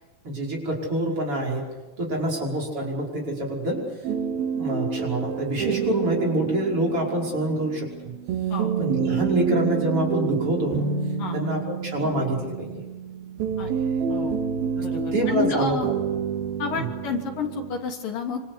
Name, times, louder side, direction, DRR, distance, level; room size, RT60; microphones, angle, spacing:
voice 1, 0.2-1.7 2.0-3.8 4.5-8.1 8.8-10.9 11.3-12.8 14.8-15.8 16.7-16.9, right 1 dB, 35° right, -1 dB, 6.3 m, -26 dB
sound 1, 4.0-17.8, right 7 dB, 85° right, 3.7 m, -28 dB
voice 2, 14.8-15.9 16.6-18.4, left 5 dB, 65° left, 2 dB, 4.5 m, -30 dB
26.5 x 25.5 x 8.3 m, 1.2 s
omnidirectional pair, 4.2 m